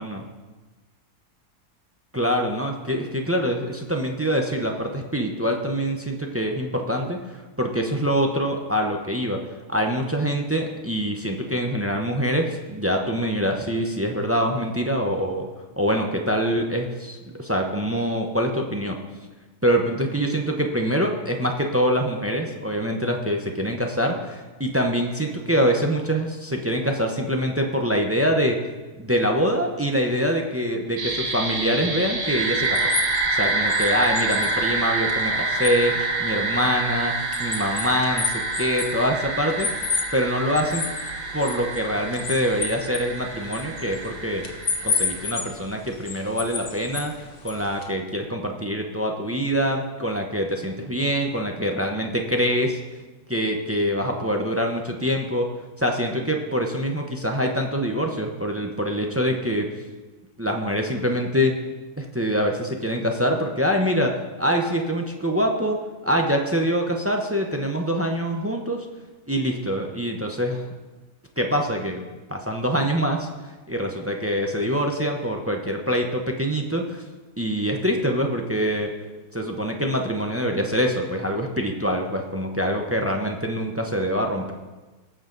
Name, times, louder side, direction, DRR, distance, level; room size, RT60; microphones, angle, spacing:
voice 1, 2.1-15.5 15.8-19.0 19.6-28.6 29.0-32.9 33.3-39.7 40.1-40.8 41.3-44.4 44.8-47.1 47.4-52.8 53.3-55.5 55.8-59.7 60.4-61.5 62.0-65.8 66.0-68.9 69.3-70.6 71.4-77.0 77.4-78.9 79.3-84.5, equal, 15° right, 2 dB, 0.6 m, -24 dB
sound 1, 31.0-45.3, right 2 dB, 75° right, 1.9 m, -27 dB
sound 2, 32.2-47.9, left 5 dB, 75° left, 1.8 m, -33 dB
18.5 x 7.0 x 4.0 m, 1.2 s
omnidirectional pair, 1.7 m